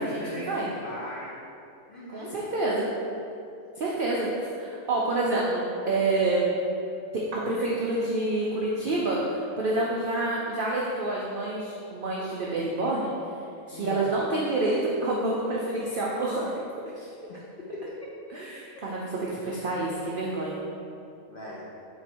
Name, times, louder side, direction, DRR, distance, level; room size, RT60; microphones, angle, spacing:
voice 1, 0.0-1.3 1.9-2.4 13.7-14.0 17.3-18.0 19.6-20.2 21.3-21.6, left 1 dB, 70° left, -6 dB, 0.5 m, -40 dB
voice 2, 2.1-2.9 3.8-4.3 4.6-6.5 7.1-13.1 13.7-16.5 17.0-17.1 18.3-19.0 19.3-20.6, right 2 dB, 85° right, -4 dB, 0.4 m, -28 dB
3.9 x 2.6 x 4.2 m, 2.6 s
omnidirectional pair, 1.5 m